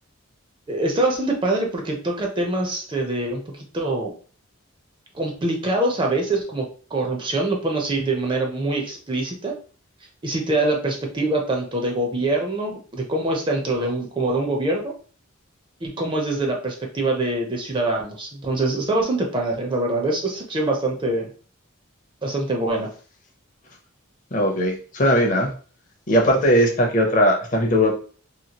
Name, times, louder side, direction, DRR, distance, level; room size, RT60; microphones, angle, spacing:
voice 1, 0.7-4.1 5.1-9.5 10.2-14.9 15.8-21.3 22.2-22.9, right 2 dB, 20° right, 0 dB, 0.5 m, -24 dB
voice 2, 24.3-25.5 26.1-27.9, equal, 35° left, 2 dB, 0.6 m, -19 dB
2.9 x 2.6 x 2.8 m, 0.41 s
head